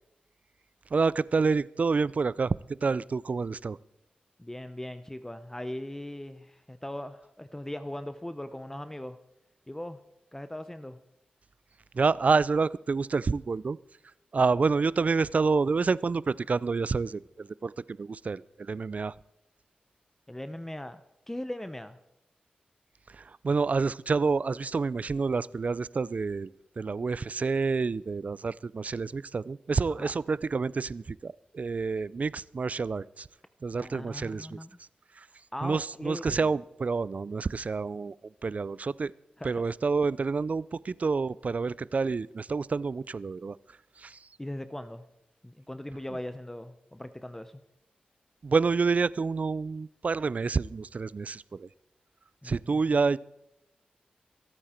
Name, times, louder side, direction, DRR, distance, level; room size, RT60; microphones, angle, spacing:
voice 1, 0.9-2.6 2.8-3.8 11.9-13.8 14.3-19.1 23.1-26.5 26.8-33.3 33.6-34.6 35.2-35.3 35.6-38.1 38.4-39.1 39.4-43.6 44.0-44.2 48.4-51.7 52.4-53.2, right 4 dB, 50° right, 21 dB, 0.4 m, -28 dB
voice 2, 4.4-9.2 9.7-10.0 10.3-11.0 20.3-21.0 21.3-22.0 29.9-30.1 33.8-34.7 35.5-36.5 39.4-39.7 44.4-45.1 45.4-47.6 52.4-52.8, left 1 dB, 15° left, 11 dB, 0.7 m, -39 dB
25.0 x 8.9 x 4.4 m, 0.88 s
cardioid pair, 55°, 3 cm